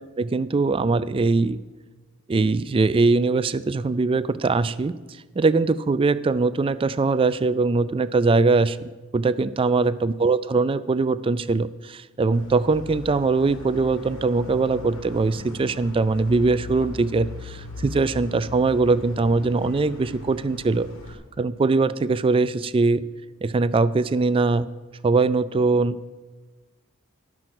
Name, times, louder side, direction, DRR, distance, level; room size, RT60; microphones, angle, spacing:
voice 1, 0.2-1.6 2.3-4.9 5.4-20.9 21.4-23.0 23.4-24.7 25.0-26.0, right 3 dB, 25° right, 15 dB, 0.3 m, -21 dB
sound 1, 12.3-21.1, left 3 dB, 65° left, 1.6 m, -39 dB
11.5 x 6.0 x 7.8 m, 1.3 s
head